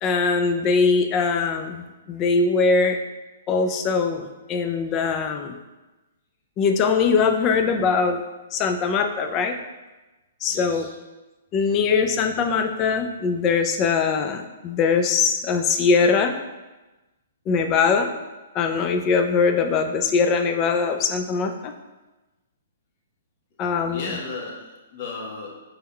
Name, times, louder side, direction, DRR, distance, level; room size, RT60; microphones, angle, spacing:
voice 1, 0.0-3.0 3.5-5.5 6.6-8.2 8.5-9.6 10.4-10.9 11.5-16.4 17.5-18.2 18.5-21.7 23.6-24.1, left 5 dB, 30° left, 6 dB, 0.4 m, -21 dB
voice 2, 10.5-10.9 23.8-25.5, left 3 dB, 45° left, -3 dB, 1.2 m, -35 dB
5.3 x 3.4 x 2.3 m, 1.1 s
hypercardioid pair, 135°, 0 cm